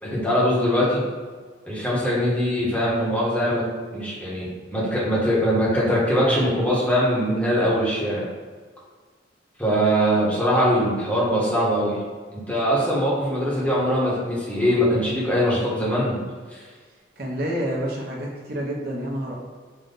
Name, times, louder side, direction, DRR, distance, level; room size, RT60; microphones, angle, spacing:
voice 1, 0.0-1.0 1.7-3.6 3.9-8.2 9.6-12.0 12.3-16.2 16.5-16.6, equal, 5° left, -7 dB, 1.2 m, -22 dB
voice 2, 17.2-19.3, equal, 50° right, -3 dB, 1.0 m, -28 dB
5.3 x 2.5 x 3.8 m, 1.5 s
head